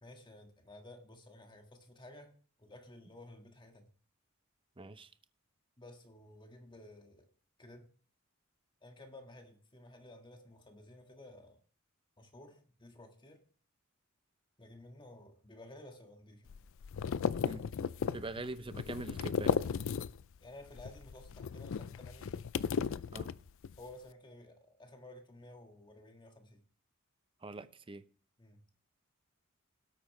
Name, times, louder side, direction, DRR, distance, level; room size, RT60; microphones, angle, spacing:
voice 1, 0.0-3.9 5.8-7.3 7.6-7.9 8.8-11.6 12.2-13.4 14.6-16.5 20.4-22.3 23.8-26.6 28.4-28.6, left 1 dB, 25° left, 1.7 m, -54 dB
voice 2, 4.8-5.1 17.4-17.6 18.1-19.6 23.1-23.3 27.4-28.0, right 2 dB, 25° right, 0.6 m, -43 dB
sound 1, 16.5-20.4 20.7-23.8, left 6 dB, 65° left, 0.4 m, -35 dB
17.5 x 8.5 x 3.2 m
head